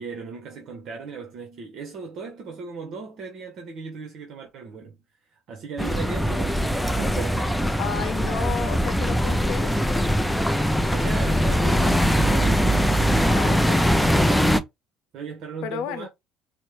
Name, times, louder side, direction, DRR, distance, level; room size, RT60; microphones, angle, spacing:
voice 1, 0.0-5.0 5.5-7.8 10.9-12.8 15.1-16.1, right 5 dB, 60° right, 0.9 m, -37 dB
sound 1, 5.8-14.6, equal, 5° left, 0.4 m, -21 dB
voice 2, 7.8-9.7 13.3-14.4 15.6-16.1, left 9 dB, 80° left, 0.7 m, -33 dB
4.2 x 2.1 x 3.1 m
cardioid pair, 110°, 0 cm